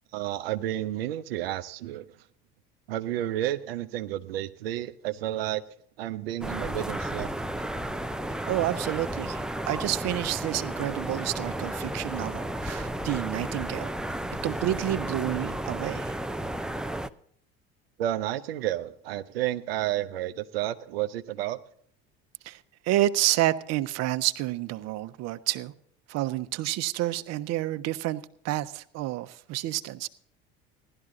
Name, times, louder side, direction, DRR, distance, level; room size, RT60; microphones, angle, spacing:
voice 1, 0.1-2.0 2.9-5.6 6.0-7.3 18.0-21.6, right 13 dB, 90° right, 0.7 m, -31 dB
sound 1, 6.4-17.1, right 1 dB, ahead, 0.6 m, -33 dB
voice 2, 8.5-13.9 14.4-16.1 22.4-22.6 22.8-25.7 26.1-30.1, right 15 dB, 60° right, 1.0 m, -29 dB
16.0 x 12.5 x 3.8 m
hypercardioid pair, 75°, 29 cm